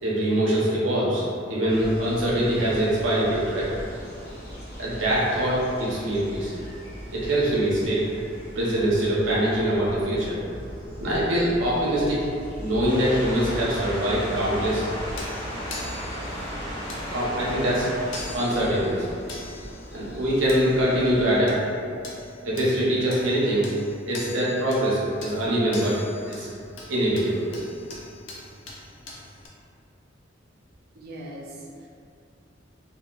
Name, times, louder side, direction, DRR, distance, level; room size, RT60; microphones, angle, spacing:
voice 1, 0.0-3.7 4.8-6.5 7.1-8.1 8.5-10.4 11.0-12.2 12.6-14.9 17.0-17.9 18.3-19.1 19.9-21.6 22.4-23.7 24.1-26.0 26.3-26.5 26.9-27.5, right 1 dB, 90° right, -6 dB, 0.8 m, -23 dB
sound 1, 1.7-21.4, equal, 55° left, 0.8 m, -40 dB
sound 2, 12.9-19.2, equal, 25° left, 0.6 m, -35 dB
sound 3, 14.7-29.5, left 2 dB, 75° left, 0.5 m, -43 dB
voice 2, 31.0-31.9, right 1 dB, 55° right, -3 dB, 0.4 m, -40 dB
2.8 x 2.8 x 2.3 m, 2.4 s
head